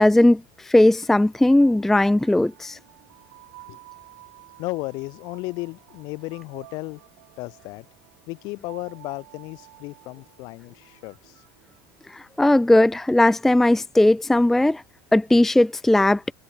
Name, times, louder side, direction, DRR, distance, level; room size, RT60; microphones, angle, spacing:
voice 1, 0.0-2.8 12.1-14.8 15.1-16.2, left 1 dB, 5° left, 0.4 m, -18 dB
sound 1, 1.6-12.5, right 21 dB, 90° right, 6.6 m, -51 dB
voice 2, 4.6-7.0 7.4-7.9 8.3-11.4, left 24 dB, 60° left, 3.7 m, -34 dB
cardioid pair, 150°, 8 cm